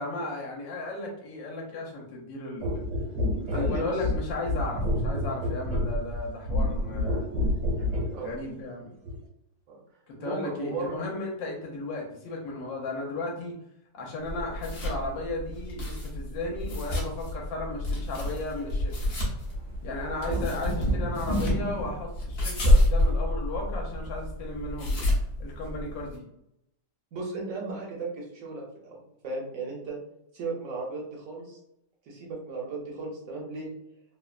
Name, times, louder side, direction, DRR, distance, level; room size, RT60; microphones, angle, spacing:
voice 1, 0.0-2.8 3.4-7.3 8.1-8.9 10.1-13.6 13.9-19.1 19.8-25.0 25.4-26.3, left 2 dB, 75° left, -1 dB, 1.4 m, -35 dB
sound 1, 2.6-8.2 9.0-9.2, left 1 dB, 90° right, 1.6 m, -28 dB
voice 2, 3.5-3.9 8.1-8.4 9.7-9.8 10.2-10.9 20.2-20.4 27.1-30.0 30.3-31.6 32.1-33.7, right 3 dB, 65° right, -3 dB, 0.8 m, -35 dB
sound 2, 14.2-26.2, left 1 dB, 55° left, 0.7 m, -29 dB
sound 3, 16.9-17.0 18.9-19.0 19.3-21.9, right 1 dB, 25° left, 0.3 m, -30 dB
3.5 x 2.1 x 2.3 m, 0.80 s
omnidirectional pair, 2.1 m